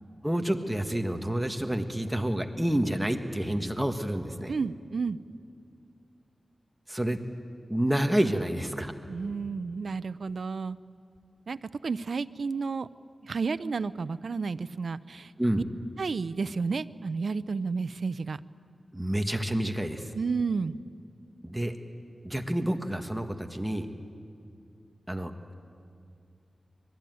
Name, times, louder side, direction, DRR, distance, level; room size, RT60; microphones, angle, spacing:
voice 1, 0.2-4.5 6.9-7.2 7.7-8.9 15.4-15.6 18.9-20.1 21.4-21.8 22.2-23.9 25.1-25.5, right 1 dB, 10° right, 6 dB, 1.6 m, -29 dB
voice 2, 4.5-5.2 9.1-10.8 11.5-11.6 11.8-12.9 13.2-15.6 16.0-18.4 20.1-20.7, right 4 dB, 75° right, 14 dB, 0.6 m, -31 dB
25.0 x 21.0 x 9.4 m, 2.4 s
wide cardioid pair, 85°, 0 cm